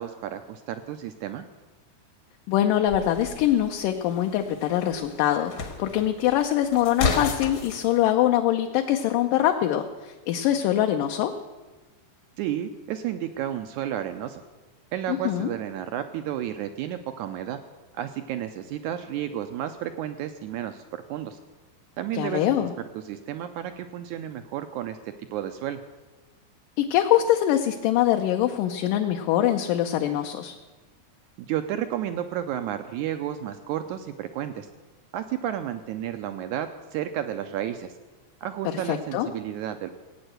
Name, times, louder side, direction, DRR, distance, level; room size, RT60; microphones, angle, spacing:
voice 1, 0.0-1.4 12.4-14.4 14.9-17.6 17.9-20.8 21.1-21.4 22.0-22.4 22.9-25.0 25.3-25.8 31.4-34.7 35.1-37.9 38.4-39.9, right 11 dB, 85° right, 9 dB, 1.7 m, -32 dB
voice 2, 2.5-11.3 15.1-15.5 22.1-22.7 26.8-30.6 38.6-39.3, left 12 dB, 75° left, 4 dB, 2.1 m, -23 dB
sound 1, 2.9-7.9, left 4 dB, 55° left, 1.4 m, -33 dB
16.5 x 8.9 x 7.9 m, 1.2 s
omnidirectional pair, 4.1 m